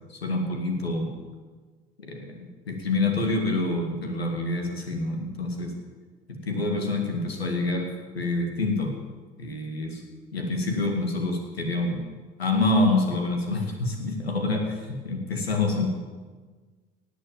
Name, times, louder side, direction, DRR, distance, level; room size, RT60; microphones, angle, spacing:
voice 1, 0.1-1.1 2.0-2.4 2.7-5.7 6.3-7.9 8.1-9.0 9.4-10.0 10.3-12.0 12.4-15.9, left 2 dB, 85° left, 3 dB, 2.1 m, -27 dB
18.0 x 8.6 x 7.4 m, 1.4 s
figure-of-eight pair, 60°, 30 cm